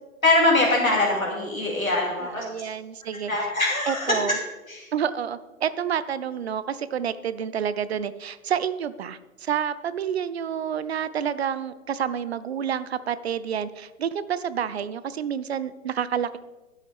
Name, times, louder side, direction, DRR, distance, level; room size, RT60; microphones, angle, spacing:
voice 1, 0.2-2.4 3.3-4.2 4.7-4.9, left 2 dB, 80° left, -2 dB, 2.7 m, -22 dB
voice 2, 2.2-3.3 3.9-4.4 4.9-16.4, right 8 dB, 50° right, 15 dB, 0.5 m, -29 dB
12.0 x 7.2 x 3.5 m, 1.1 s
figure-of-eight pair, 120°, 40 cm